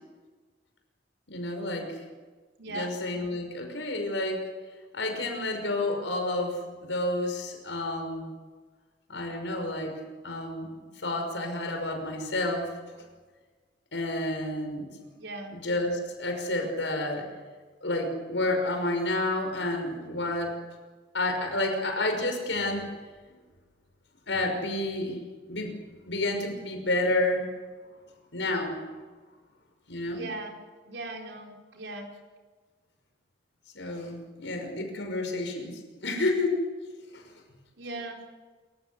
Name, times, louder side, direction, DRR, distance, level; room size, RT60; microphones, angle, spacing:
voice 1, 1.3-2.0 2.7-4.4 4.9-8.3 9.1-9.9 10.2-10.7 11.0-12.7 13.9-14.9 15.5-17.3 17.8-20.5 21.1-22.9 24.3-25.2 25.5-25.7 26.1-27.5 28.3-28.9 29.9-30.3 33.7-36.6 37.1-37.2, left 2 dB, 90° left, 4 dB, 5.7 m, -30 dB
voice 2, 2.6-2.9 15.2-15.6 30.1-30.6 30.8-32.1 37.8-38.2, right 2 dB, 80° right, 1 dB, 4.7 m, -38 dB
27.0 x 15.0 x 8.3 m, 1.4 s
head